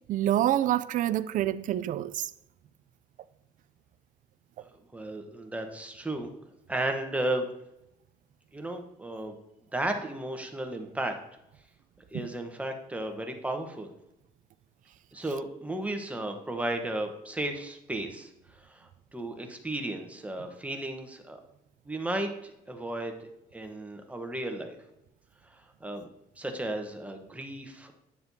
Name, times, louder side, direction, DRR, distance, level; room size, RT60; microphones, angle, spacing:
voice 1, 0.1-2.3 12.1-12.3, right 12 dB, 50° right, 0.4 m, -27 dB
voice 2, 4.6-6.3 6.7-7.4 8.5-9.4 9.7-11.1 12.1-13.9 15.1-18.3 18.6-21.4 21.9-23.2 23.5-24.8 25.5-26.1 26.4-27.9, right 1 dB, 10° right, 1.1 m, -34 dB
9.6 x 6.8 x 2.7 m
cardioid pair, 110°, 17 cm